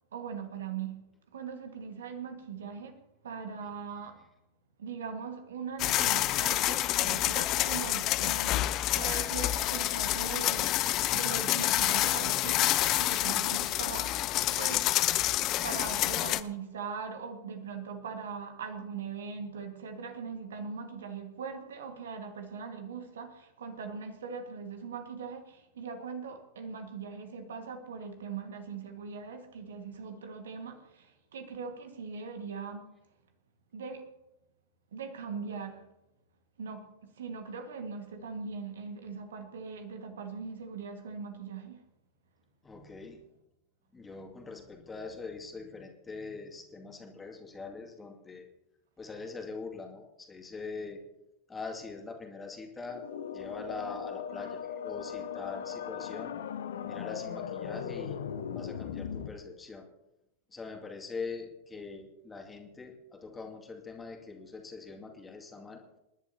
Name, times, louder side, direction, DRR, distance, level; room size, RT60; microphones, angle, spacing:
voice 1, 0.1-4.2 4.8-14.9 15.6-32.9 33.7-34.1 34.9-35.9 36.6-41.8, right 5 dB, 65° right, 1.7 m, -41 dB
sound 1, 5.8-16.4, left 15 dB, 35° left, 0.6 m, -28 dB
voice 2, 42.6-43.2 43.9-48.5 49.0-51.0 51.5-53.0 53.3-56.3 56.8-58.2 58.5-59.9 60.5-65.8, left 4 dB, 15° left, 2.3 m, -43 dB
sound 2, 52.8-59.3, left 8 dB, 60° left, 0.9 m, -38 dB
28.0 x 11.0 x 2.8 m
figure-of-eight pair, 90°, 0 cm